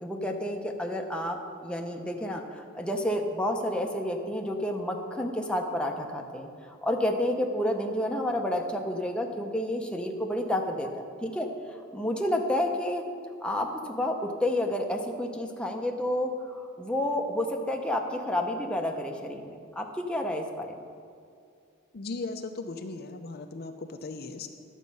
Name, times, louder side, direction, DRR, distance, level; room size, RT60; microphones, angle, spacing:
voice 1, 0.0-11.5 11.9-13.0 13.4-20.7, left 1 dB, 5° left, 2 dB, 0.7 m, -30 dB
voice 2, 21.9-24.5, left 3 dB, 45° left, 6 dB, 0.5 m, -37 dB
11.5 x 7.3 x 5.4 m, 2.3 s
head